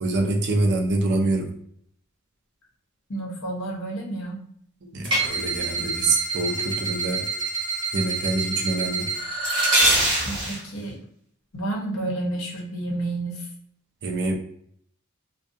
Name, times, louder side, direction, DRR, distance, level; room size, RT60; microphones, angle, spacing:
voice 1, 0.0-1.5 4.8-7.2 7.9-9.1 14.0-14.3, right 2 dB, 55° right, 3 dB, 0.5 m, -25 dB
voice 2, 3.1-4.4 10.2-11.0 11.5-13.5, right 2 dB, 65° left, -2 dB, 0.9 m, -30 dB
sound 1, 5.0-10.6, right 2 dB, 25° right, 0.9 m, -25 dB
2.5 x 2.3 x 2.5 m, 0.66 s
head